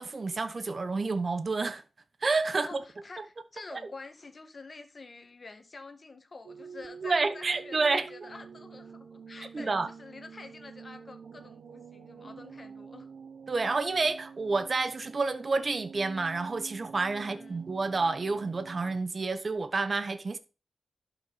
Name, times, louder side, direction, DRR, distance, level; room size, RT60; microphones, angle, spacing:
voice 1, 0.0-1.8 2.2-2.8 3.2-3.3 3.7-3.8 7.0-8.1 9.5-9.9 13.5-20.4, right 3 dB, 40° right, 1.0 m, -29 dB
voice 2, 2.5-13.1 17.1-17.6, left 3 dB, 40° left, 1.8 m, -48 dB
sound 1, 6.4-19.0, right 6 dB, 65° right, 0.7 m, -48 dB
11.5 x 5.9 x 4.3 m
cardioid pair, 85°, 0 cm